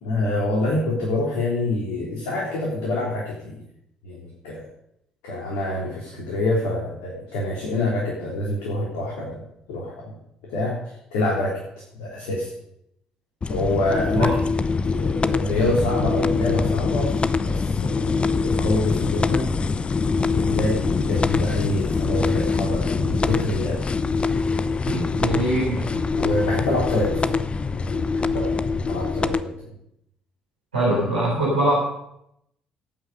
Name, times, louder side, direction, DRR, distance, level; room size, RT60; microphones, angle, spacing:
voice 1, 0.0-3.6 4.0-4.7 5.2-9.4 9.7-10.2 10.5-11.6 11.9-12.5 13.5-14.3 14.8-19.5 20.3-23.8 26.1-27.4 27.9-29.7, left 2 dB, 65° left, -3 dB, 3.4 m, -26 dB
sound 1, 13.4-29.4, left 4 dB, 30° left, 0.8 m, -24 dB
voice 2, 24.9-25.9 30.7-31.8, right 1 dB, 80° right, -6 dB, 3.9 m, -22 dB
18.0 x 9.2 x 5.3 m, 0.77 s
figure-of-eight pair, 45°, 4 cm